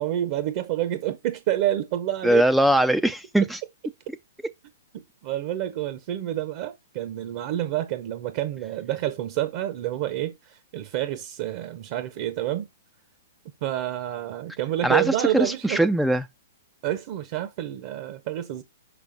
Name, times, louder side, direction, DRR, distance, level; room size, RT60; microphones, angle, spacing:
voice 1, 0.0-2.4 4.9-12.7 13.6-15.8 16.8-18.6, right 13 dB, 40° right, 0.7 m, -28 dB
voice 2, 2.2-3.6 14.8-16.2, right 1 dB, ahead, 0.3 m, -21 dB
5.9 x 5.4 x 3.8 m
hypercardioid pair, 160°, 0 cm